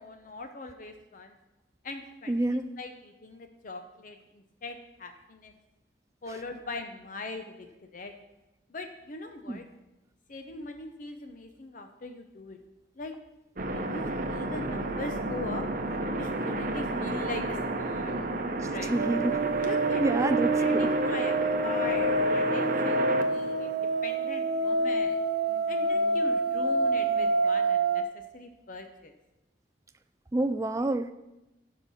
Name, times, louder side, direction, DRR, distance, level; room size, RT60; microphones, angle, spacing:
voice 1, 0.0-1.4 1.8-5.5 6.2-8.1 8.7-9.6 10.3-12.6 13.0-13.1 13.7-15.7 16.2-18.4 18.7-19.0 19.6-23.0 23.3-25.2 25.7-28.0 28.3-29.2, left 2 dB, 45° left, 6 dB, 0.6 m, -41 dB
voice 2, 2.3-2.7 9.5-9.6 18.9-19.4 20.0-20.9 30.3-31.1, right 2 dB, 15° right, 9 dB, 0.3 m, -27 dB
sound 1, 13.6-24.2 26.0-26.2 27.0-27.3, right 2 dB, 50° right, 0.8 m, -32 dB
sound 2, 19.0-28.0, right 2 dB, 85° right, 0.9 m, -27 dB
15.0 x 5.5 x 4.2 m, 0.97 s
head